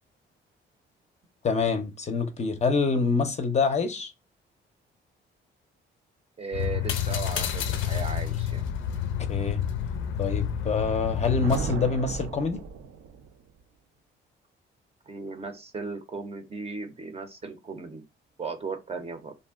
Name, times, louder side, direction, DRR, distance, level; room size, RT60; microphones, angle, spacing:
voice 1, 1.4-4.1 9.3-9.6 10.2-12.6, left 4 dB, 35° left, 0.5 m, -26 dB
voice 2, 6.4-8.6 15.1-18.0 18.4-19.3, right 4 dB, 30° right, 0.6 m, -36 dB
sound 1, 6.5-11.6, left 9 dB, 80° left, 0.5 m, -29 dB
Thunder, 11.1-13.3, right 5 dB, 85° right, 0.5 m, -35 dB
2.5 x 2.1 x 3.4 m
cardioid pair, 90°, 20 cm